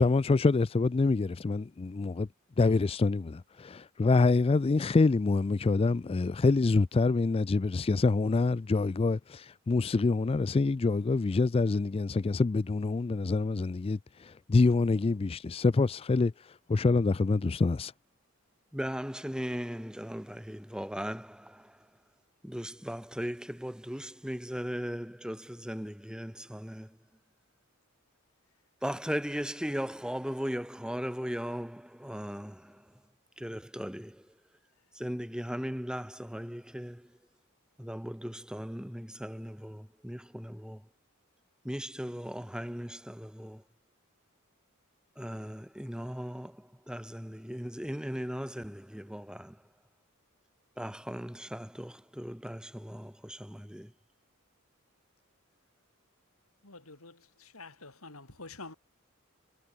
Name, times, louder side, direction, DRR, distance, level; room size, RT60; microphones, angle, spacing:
voice 1, 0.0-2.3 2.6-17.9, left 3 dB, 25° left, 0.3 m, -26 dB
voice 2, 18.7-21.7 22.4-26.9 28.8-32.8 33.4-34.2 35.0-37.1 37.8-40.8 41.6-43.6 45.2-49.6 50.8-53.9, equal, 5° right, 2.0 m, -38 dB
voice 3, 56.6-58.7, left 3 dB, 90° left, 5.6 m, -48 dB
head